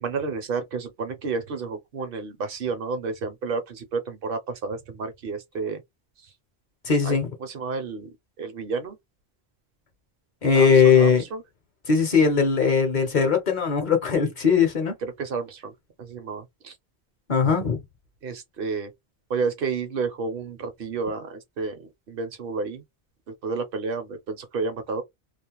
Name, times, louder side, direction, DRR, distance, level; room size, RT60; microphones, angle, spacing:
voice 1, 0.0-5.8 7.0-9.0 10.5-11.4 14.1-14.3 15.0-15.7 16.0-16.7 18.2-18.9 19.3-22.8 23.4-25.0, right 4 dB, 65° right, 0.8 m, -31 dB
voice 2, 6.8-7.3 10.4-11.2 11.9-14.9 17.3-17.8, left 6 dB, 50° left, 0.7 m, -19 dB
2.4 x 2.0 x 2.9 m
omnidirectional pair, 1.1 m